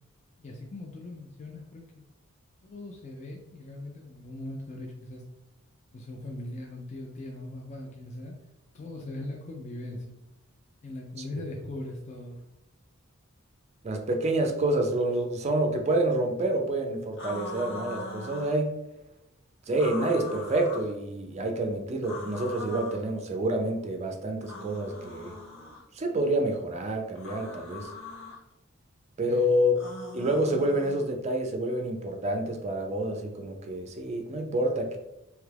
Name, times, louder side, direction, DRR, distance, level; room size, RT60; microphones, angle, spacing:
voice 1, 0.4-2.1 2.6-5.2 5.9-8.3 8.7-10.1 10.8-12.4 29.3-29.5, left 1 dB, 35° left, 0 dB, 0.3 m, -40 dB
voice 2, 13.8-18.8 19.7-25.4 25.9-27.9 29.2-35.0, right 1 dB, 30° right, 3 dB, 0.4 m, -28 dB
sound 1, 17.2-18.6 19.7-20.9 22.0-23.0 24.4-25.8 27.2-28.4 29.8-31.1, left 3 dB, 65° left, 0.8 m, -41 dB
2.9 x 2.3 x 3.3 m, 0.89 s
head